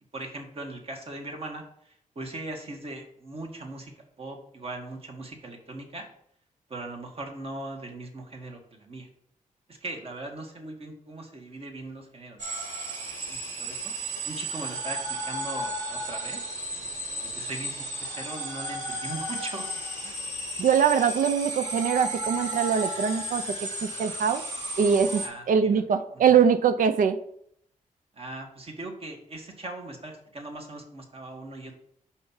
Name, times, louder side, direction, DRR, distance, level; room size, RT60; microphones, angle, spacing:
voice 1, 0.1-6.1 6.7-9.1 9.7-12.4 13.2-13.9 14.2-16.5 17.2-19.7 20.0-20.2 25.2-25.8 28.1-31.7, right 2 dB, 45° right, 2 dB, 1.5 m, -39 dB
sound 1, 12.4-25.3, right 1 dB, 65° right, 2.3 m, -34 dB
voice 2, 20.6-23.4 23.8-24.4 24.8-27.2, right 7 dB, 80° right, 9 dB, 0.4 m, -23 dB
5.5 x 4.4 x 5.6 m, 0.69 s
wide cardioid pair, 105°, 14 cm